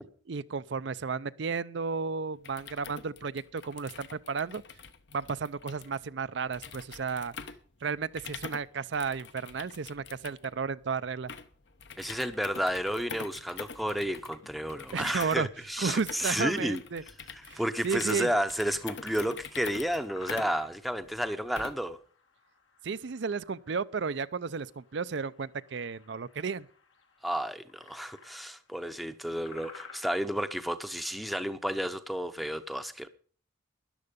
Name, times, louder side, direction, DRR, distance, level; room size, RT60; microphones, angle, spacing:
voice 1, 0.3-4.6 5.1-7.3 7.8-11.3 14.9-15.5 15.8-17.0 17.4-18.3 22.8-26.7, right 5 dB, 65° right, 0.5 m, -33 dB
sound 1, 2.3-22.0, left 5 dB, 60° left, 1.0 m, -46 dB
voice 2, 12.0-16.8 17.5-22.0 27.2-33.1, equal, ahead, 0.7 m, -32 dB
sound 2, 14.4-30.7, left 5 dB, 80° left, 2.6 m, -56 dB
13.5 x 11.0 x 5.2 m
head